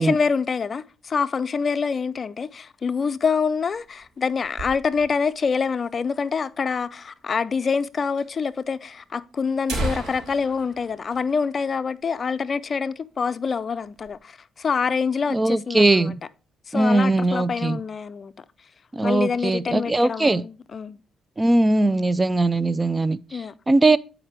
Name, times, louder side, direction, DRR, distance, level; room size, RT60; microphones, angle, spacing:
voice 1, 0.0-16.1 16.7-18.3 19.0-21.0 23.3-23.5, left 5 dB, 40° left, 0.4 m, -26 dB
sound 1, 3.5-5.3 5.6-5.7 5.9-6.0 6.7-6.8 7.7-7.8 8.2-8.3 9.0-9.1 9.5-12.1 12.4-12.5 12.9-13.2 13.6-14.2, right 1 dB, 60° right, 3.5 m, -34 dB
voice 2, 15.3-16.1 16.7-17.8 18.9-20.4 21.4-23.2 23.7-24.0, right 2 dB, 20° right, 0.3 m, -20 dB
8.8 x 4.9 x 4.6 m
cardioid pair, 90°, 0 cm